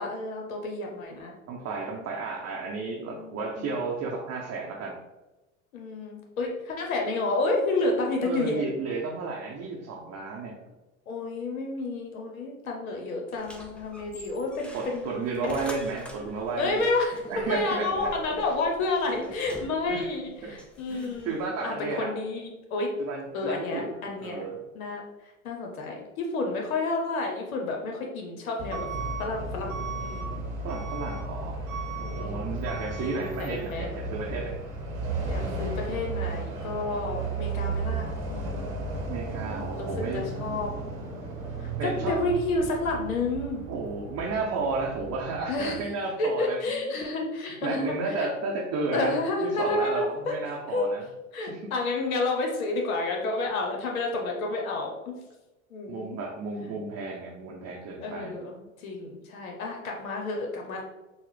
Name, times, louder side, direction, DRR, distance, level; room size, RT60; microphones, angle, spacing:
voice 1, 0.0-1.3 3.0-3.8 5.7-8.6 11.1-15.1 15.4-15.6 16.6-21.4 21.6-22.9 23.3-24.4 24.7-28.9 29.2-30.4 32.2-32.6 32.9-33.9 35.3-38.8 39.5-40.7 41.6-43.6 45.5-45.8 46.2-48.3 48.9-50.4 50.7-50.8 51.3-55.2 55.7-56.2 58.0-60.8, left 3 dB, 90° left, 1 dB, 0.8 m, -30 dB
voice 2, 1.5-5.0 8.2-10.5 14.7-16.8 17.3-18.4 19.9-20.1 20.4-20.6 20.9-22.1 23.0-24.6 30.6-31.6 32.0-34.6 39.1-40.6 41.8-42.2 43.7-46.8 47.6-51.0 51.5-51.7 55.9-58.4, right 3 dB, 40° right, -2 dB, 0.6 m, -33 dB
sound 1, 13.3-21.5, equal, 5° left, 0.3 m, -46 dB
Truck / Alarm, 28.6-45.8, right 3 dB, 75° right, 1.0 m, -34 dB
3.9 x 2.0 x 3.2 m, 1.0 s
hypercardioid pair, 85°, 41 cm